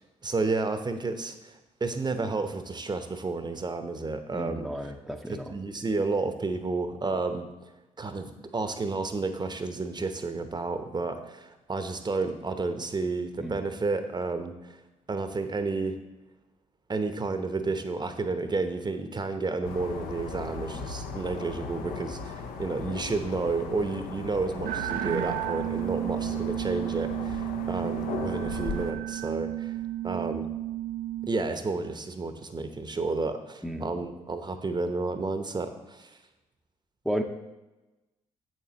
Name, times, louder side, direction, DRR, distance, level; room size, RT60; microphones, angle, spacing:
voice 1, 0.2-1.5 1.8-4.7 5.3-7.4 8.0-14.8 15.1-16.0 16.9-29.8 30.0-30.5 31.2-36.1, right 3 dB, 30° right, 8 dB, 0.8 m, -31 dB
voice 2, 4.3-5.5 13.4-13.6 33.6-33.9 37.0-37.2, equal, ahead, 3 dB, 0.7 m, -33 dB
sound 1, 19.6-28.9, left 5 dB, 65° left, 0.8 m, -38 dB
sound 2, 24.6-31.3, right 14 dB, 65° right, 0.4 m, -32 dB
8.1 x 7.5 x 2.9 m, 1.1 s
hypercardioid pair, 45°, 16 cm